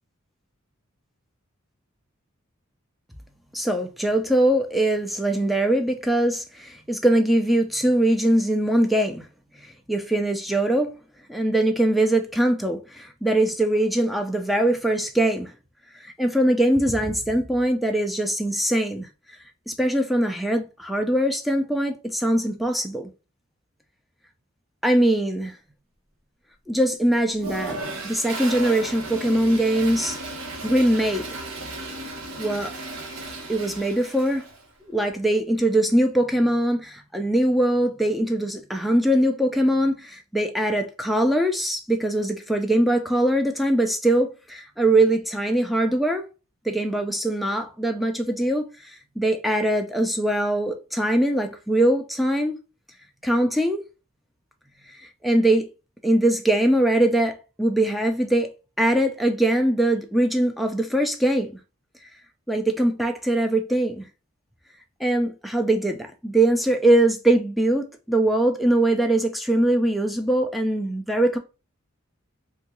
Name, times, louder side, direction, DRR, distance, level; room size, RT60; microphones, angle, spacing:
voice 1, 3.5-9.2 9.6-10.9 11.3-15.5 16.0-19.1 19.7-23.1 24.8-25.5 26.7-27.8 28.0-30.2 30.6-31.3 32.4-32.7 33.5-34.5 34.9-46.2 46.7-52.6 53.2-53.8 55.0-55.7 56.0-58.5 58.8-61.5 62.5-64.1 65.0-71.4, right 1 dB, ahead, 0.4 m, -22 dB
Toilet flush, 27.4-34.6, right 2 dB, 80° right, 0.8 m, -35 dB
3.5 x 2.2 x 2.9 m
head